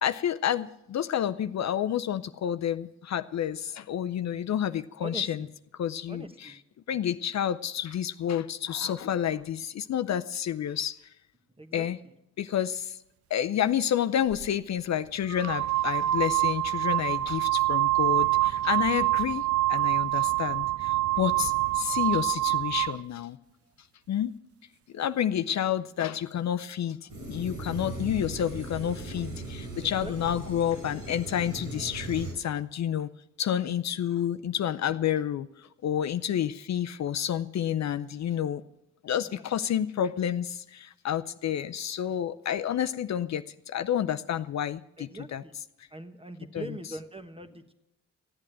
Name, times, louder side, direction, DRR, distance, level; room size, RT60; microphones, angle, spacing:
voice 1, 0.0-5.5 5.7-6.5 6.9-11.0 11.7-12.0 12.4-13.0 13.3-23.4 24.1-24.3 24.9-33.1 33.4-38.6 39.0-45.4 46.5-46.6, left 10 dB, 55° left, 11 dB, 0.5 m, -29 dB
voice 2, 5.0-5.5 6.1-6.5 11.6-12.1 29.8-30.1 39.2-39.4 42.1-42.3 45.0-45.6 45.9-47.7, right 2 dB, 15° right, 8 dB, 1.3 m, -42 dB
sound 1, 14.3-14.5 15.3-23.0, right 17 dB, 50° right, 0.4 m, -26 dB
sound 2, 27.1-32.3, right 2 dB, 80° right, 4.4 m, -38 dB
14.0 x 8.5 x 8.9 m, 0.88 s
cardioid pair, 60°, 32 cm